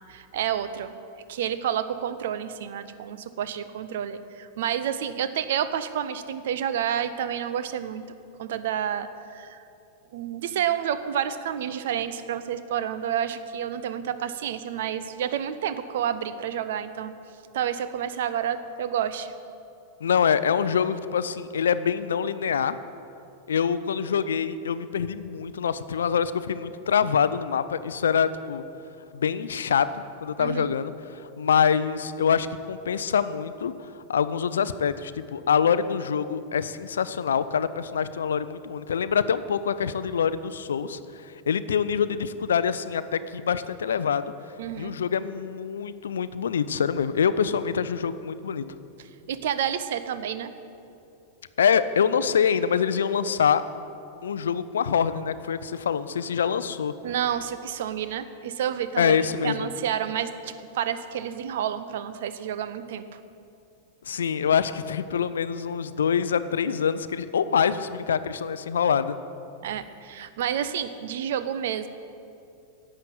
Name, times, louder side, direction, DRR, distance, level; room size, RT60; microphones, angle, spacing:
voice 1, 0.1-8.1 8.4-9.6 10.1-17.1 17.5-19.3 30.4-30.8 44.6-44.9 49.0-50.5 57.0-63.2 69.6-71.9, right 9 dB, 55° right, 12 dB, 0.6 m, -30 dB
voice 2, 20.0-22.8 23.5-28.6 29.1-33.7 34.1-44.2 44.8-48.6 51.6-53.6 54.2-56.9 59.0-59.7 64.1-69.2, left 7 dB, 65° left, 14 dB, 0.5 m, -25 dB
11.0 x 7.7 x 8.7 m, 2.6 s
figure-of-eight pair, 90°, 0 cm